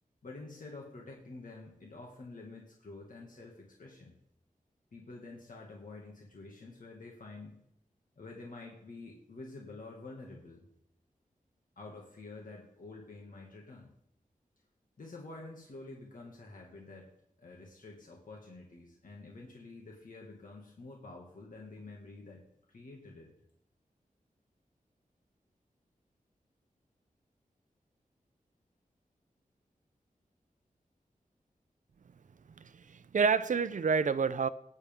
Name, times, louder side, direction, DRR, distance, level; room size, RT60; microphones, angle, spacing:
voice 1, 0.2-4.1 4.9-7.6 8.2-10.7 11.8-13.9 15.0-17.1 17.4-23.3, left 3 dB, 70° left, 2.0 m, -48 dB
voice 2, 32.6-34.5, right 5 dB, 60° right, 0.5 m, -29 dB
18.5 x 9.8 x 3.6 m
wide cardioid pair, 105°, 15 cm